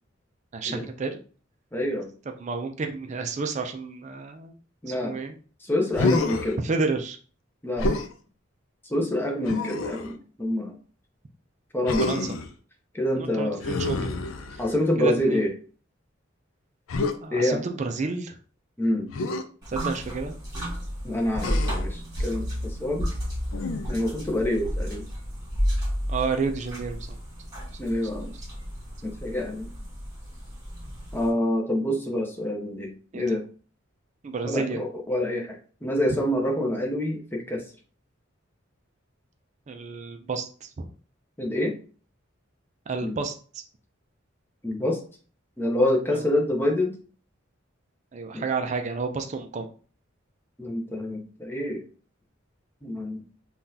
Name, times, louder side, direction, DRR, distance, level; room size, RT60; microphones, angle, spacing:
voice 1, 0.5-1.2 2.4-4.5 4.9-5.3 6.6-7.2 12.0-12.4 13.2-14.0 14.5-14.6 15.0-15.4 17.2-18.4 19.7-20.3 26.1-27.1 33.1-33.4 34.2-34.8 39.7-40.8 42.9-43.6 46.1-46.3 48.1-49.7, right 4 dB, 35° right, 5 dB, 0.4 m, -30 dB
voice 2, 1.7-2.1 4.8-5.2 5.6-6.6 7.6-8.0 8.9-10.7 11.7-12.4 12.9-13.6 14.6-15.5 17.3-17.6 18.8-19.1 21.0-23.1 23.9-25.0 27.8-28.3 29.0-29.7 31.1-33.4 34.4-37.6 41.4-41.8 43.0-43.2 44.6-45.0 45.6-46.9 48.3-48.4 50.6-51.8 52.8-53.2, left 1 dB, 10° left, 1 dB, 0.6 m, -27 dB
Human voice, 5.9-6.5 7.8-8.1 9.4-10.1 11.8-12.5 13.6-14.8 16.9-17.2 19.1-19.4 21.4-21.9 23.5-24.0, left 3 dB, 85° left, 0.4 m, -28 dB
sound 1, 19.6-31.3, equal, 20° right, 1.6 m, -32 dB
3.8 x 2.3 x 2.7 m, 0.40 s
head